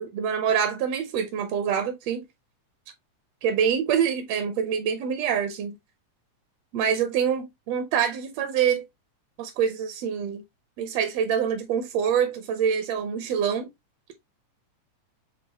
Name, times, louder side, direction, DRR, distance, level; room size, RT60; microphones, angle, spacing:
voice 1, 0.0-2.2 3.4-5.8 6.7-8.9 9.4-10.4 10.8-13.7, right 7 dB, 75° right, 1.6 m, -25 dB
7.1 x 2.4 x 2.8 m
omnidirectional pair, 3.4 m